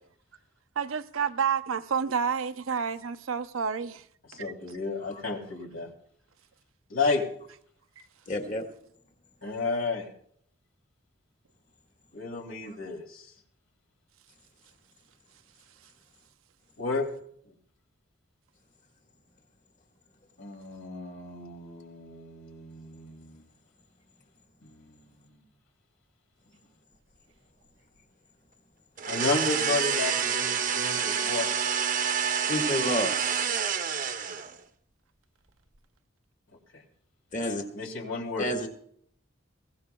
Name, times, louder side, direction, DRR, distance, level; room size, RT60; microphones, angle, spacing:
voice 1, 0.8-4.0 4.3-4.5, right 6 dB, 85° right, 0.7 m, -29 dB
voice 2, 4.3-5.9 6.9-7.2 9.4-10.1 12.1-13.3 16.8-17.1 20.4-23.4 24.6-25.4 29.1-31.5 36.7-36.8 37.7-38.5, left 3 dB, 80° left, 2.7 m, -32 dB
voice 3, 8.3-8.6 12.7-12.8 32.5-33.1 37.3-37.6 38.4-38.7, left 1 dB, 40° left, 1.7 m, -29 dB
sound 1, 29.0-34.6, right 7 dB, 40° right, 0.8 m, -28 dB
22.0 x 16.0 x 2.3 m
head